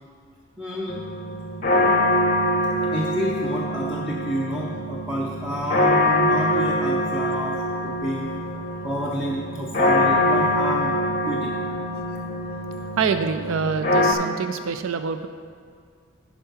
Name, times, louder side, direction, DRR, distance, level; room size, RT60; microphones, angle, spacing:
voice 1, 0.6-1.1 2.9-10.9 11.3-11.6, equal, 5° right, -4 dB, 0.6 m, -29 dB
sound 1, 0.9-14.1, left 1 dB, 40° left, 0.7 m, -24 dB
voice 2, 13.0-15.3, right 5 dB, 85° right, 9 dB, 0.4 m, -25 dB
11.0 x 4.5 x 5.6 m, 2.2 s
head